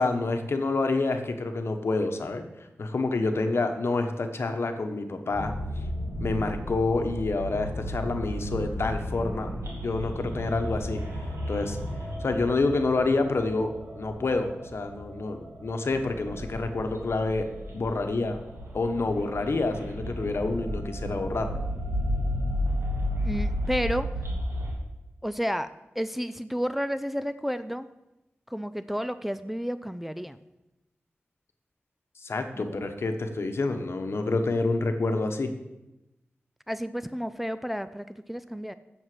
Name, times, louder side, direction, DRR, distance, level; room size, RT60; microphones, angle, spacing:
voice 1, 0.0-2.5 2.8-5.5 6.2-9.5 9.8-11.0 11.5-11.8 12.2-17.5 17.7-18.4 18.7-21.6 32.2-35.5, left 3 dB, 65° left, 6 dB, 1.1 m, -28 dB
sound 1, 5.3-24.7, equal, 85° right, 2.9 m, -33 dB
voice 2, 23.2-24.1 25.2-27.9 28.5-30.4 32.5-32.8 36.7-38.7, equal, 5° right, 11 dB, 0.4 m, -31 dB
7.9 x 7.2 x 7.8 m, 0.96 s
wide cardioid pair, 80°, 4 cm